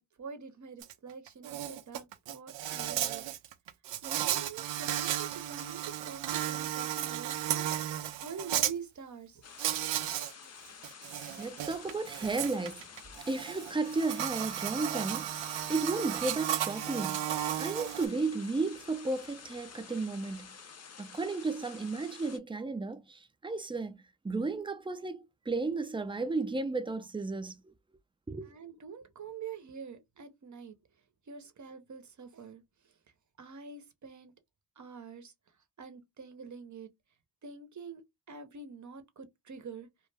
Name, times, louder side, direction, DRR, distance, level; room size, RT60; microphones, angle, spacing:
voice 1, 0.2-3.3 4.0-9.4 28.4-30.7 31.3-32.9 33.4-34.3 34.8-35.3 35.8-36.9 37.4-38.0 38.3-39.9, right 5 dB, 40° right, 0.8 m, -46 dB
Insect, 0.8-0.9 1.3-8.7 9.6-10.3 10.7-18.1, right 12 dB, 75° right, 0.6 m, -34 dB
sound 1, 9.4-22.4, left 6 dB, 35° left, 0.7 m, -50 dB
voice 2, 11.4-12.9 13.3-20.5 21.0-24.0 24.2-27.7 28.3-28.5, right 3 dB, 10° right, 0.5 m, -34 dB
2.3 x 2.1 x 3.3 m
supercardioid pair, 50°, 46 cm